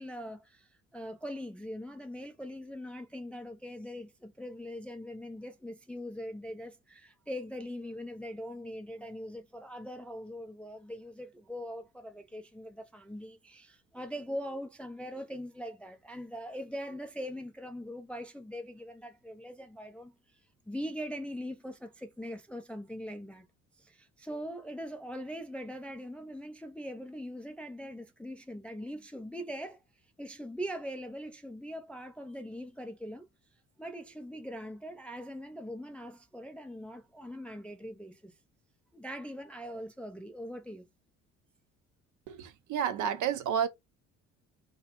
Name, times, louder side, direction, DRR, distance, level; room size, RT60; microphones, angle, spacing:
voice 1, 0.0-20.1 20.7-23.5 23.8-29.8 30.2-33.3 33.8-38.3 38.9-40.9, equal, 5° left, 0.4 m, -41 dB
voice 2, 42.3-43.7, right 8 dB, 50° right, 0.6 m, -30 dB
2.4 x 2.1 x 2.9 m
hypercardioid pair, 55°, 37 cm